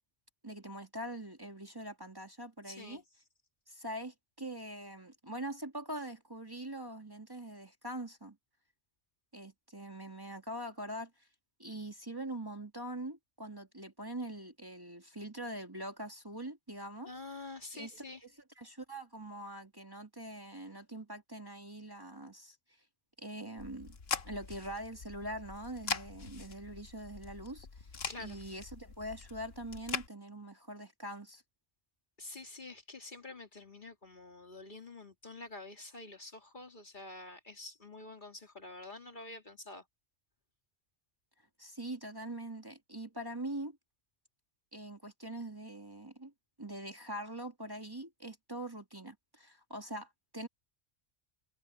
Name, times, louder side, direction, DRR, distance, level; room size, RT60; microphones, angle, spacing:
voice 1, 0.4-3.0 3.7-8.4 9.3-11.3 11.6-17.1 17.7-17.9 18.2-18.3 18.6-22.6 23.2-24.0 24.2-27.9 28.2-31.4 41.6-43.8 44.7-46.3 46.6-50.5, right 1 dB, 20° right, 2.0 m, -43 dB
voice 2, 2.7-3.0 17.0-18.2 28.1-28.4 32.2-39.8, left 2 dB, 45° left, 2.6 m, -47 dB
sound 1, 23.6-30.1, left 5 dB, 60° left, 1.4 m, -42 dB
omnidirectional pair, 1.2 m